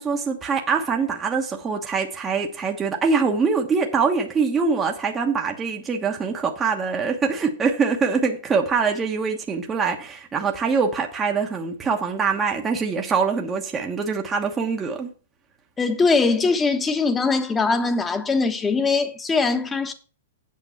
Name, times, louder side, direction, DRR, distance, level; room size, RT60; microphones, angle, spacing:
voice 1, 0.0-15.1, right 5 dB, 20° right, 1.2 m, -24 dB
voice 2, 15.8-19.9, left 4 dB, 15° left, 1.3 m, -21 dB
8.6 x 5.8 x 5.7 m
hypercardioid pair, 120°, 0 cm